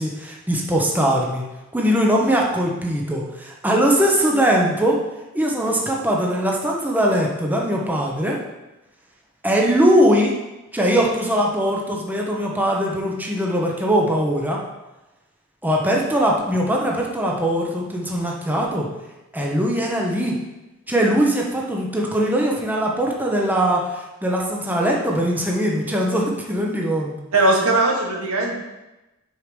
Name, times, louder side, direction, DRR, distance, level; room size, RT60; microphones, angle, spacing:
voice 1, 0.0-1.4 1.7-5.0 5.3-8.4 9.4-10.3 10.7-14.6 15.6-18.9 19.3-20.4 20.9-27.2, equal, 10° right, -2 dB, 0.9 m, -21 dB
voice 2, 27.3-28.5, right 2 dB, 90° right, 0 dB, 1.5 m, -19 dB
6.6 x 4.8 x 5.1 m, 1.0 s
head